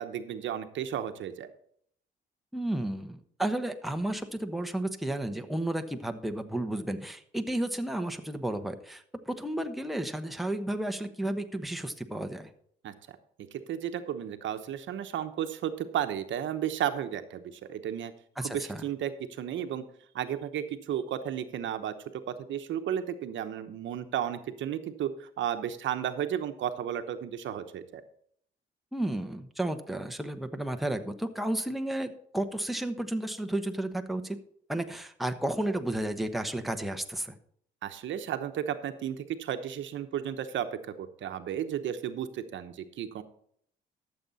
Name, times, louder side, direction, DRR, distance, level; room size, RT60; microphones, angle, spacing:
voice 1, 0.0-1.5 12.8-12.9 13.5-18.1 18.4-19.8 20.1-21.9 22.3-28.0 37.8-43.2, right 10 dB, 75° right, 9 dB, 1.0 m, -33 dB
voice 2, 2.5-12.5 18.4-18.8 28.9-34.4 34.7-37.3, right 1 dB, ahead, 5 dB, 1.1 m, -32 dB
13.0 x 7.3 x 4.1 m, 0.65 s
cardioid pair, 90°, 20 cm